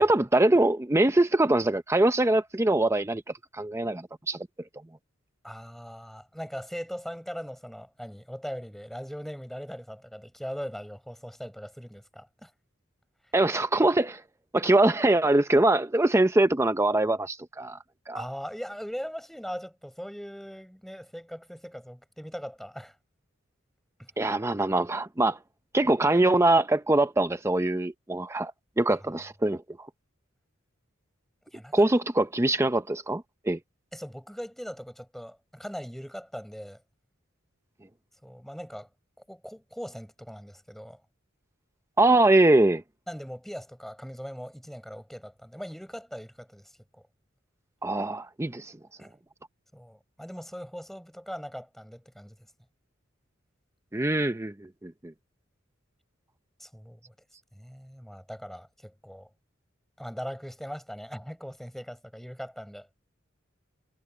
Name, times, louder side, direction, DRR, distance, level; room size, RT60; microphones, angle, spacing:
voice 1, 0.0-3.2 3.5-4.5 13.3-14.2 14.5-17.8 18.1-18.2 24.2-25.4 25.7-28.5 28.8-29.6 31.7-33.6 42.0-42.8 47.8-48.7 53.9-55.1, right 2 dB, 15° right, 0.6 m, -23 dB
voice 2, 5.4-12.5 18.1-23.0 24.0-24.1 31.5-31.8 33.9-36.8 38.2-38.9 39.2-41.0 43.1-47.1 49.0-49.1 49.7-52.4 56.6-57.1 57.5-59.3 60.0-62.9, equal, ahead, 4.3 m, -40 dB
head